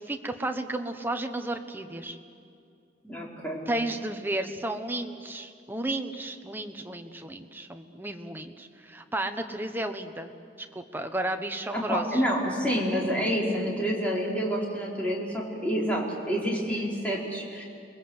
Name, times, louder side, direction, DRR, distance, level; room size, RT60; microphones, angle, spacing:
voice 1, 0.0-2.2 3.7-10.3 10.6-12.2, right 1 dB, 10° right, 6 dB, 1.1 m, -33 dB
voice 2, 3.0-3.7 11.7-17.6, equal, 10° left, -4 dB, 4.3 m, -28 dB
29.0 x 21.5 x 8.0 m, 2.5 s
head